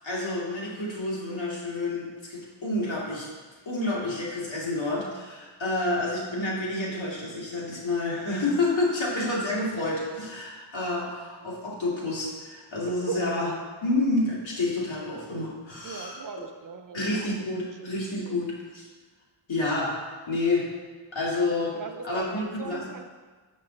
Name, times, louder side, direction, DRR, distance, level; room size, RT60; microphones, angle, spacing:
voice 1, 0.0-3.3 3.7-13.5 13.8-16.2 16.9-18.9 19.5-20.0 20.3-20.7 21.1-21.8 22.0-22.9, left 2 dB, 70° left, -5 dB, 2.2 m, -29 dB
voice 2, 12.9-13.6 15.8-17.0 18.3-18.4 21.7-23.1, right 6 dB, 45° right, 6 dB, 0.5 m, -38 dB
7.4 x 5.3 x 3.8 m, 1.4 s
wide cardioid pair, 115°, 48 cm